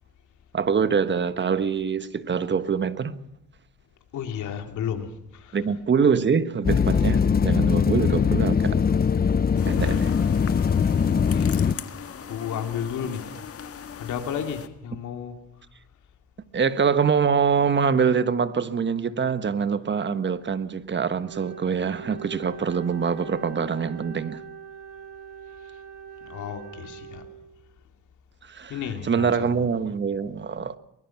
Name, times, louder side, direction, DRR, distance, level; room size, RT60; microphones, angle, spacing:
voice 1, 0.5-3.2 5.5-8.8 9.7-10.1 16.5-24.4 28.5-28.8 29.0-30.8, right 6 dB, 35° right, 1.3 m, -24 dB
voice 2, 4.1-5.8 11.0-11.7 12.3-13.4 14.0-15.3 25.6-25.8 26.2-27.3 28.7-29.7, left 8 dB, 75° left, 2.9 m, -33 dB
sound 1, 6.6-11.7, left 6 dB, 30° left, 0.7 m, -21 dB
sound 2, 9.6-14.7, left 7 dB, 50° left, 1.7 m, -40 dB
Wind instrument woodwind instrument, 21.2-27.6, right 7 dB, 90° right, 4.6 m, -42 dB
23.5 x 20.5 x 5.9 m
cardioid pair, 90°, 30 cm